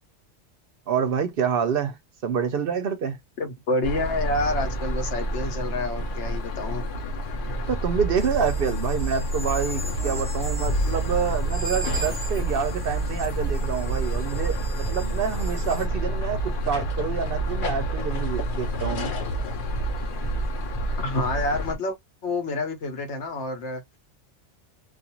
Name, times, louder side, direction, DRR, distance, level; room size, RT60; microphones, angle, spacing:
voice 1, 0.9-3.2 7.7-19.2, right 7 dB, 60° right, 0.7 m, -27 dB
voice 2, 3.4-6.8 21.0-22.0 22.2-23.8, left 2 dB, 70° left, 1.1 m, -28 dB
sound 1, 3.8-21.8, right 1 dB, 50° left, 0.8 m, -28 dB
sound 2, 8.2-15.9, right 1 dB, 20° left, 0.8 m, -39 dB
2.5 x 2.3 x 2.8 m
omnidirectional pair, 1.2 m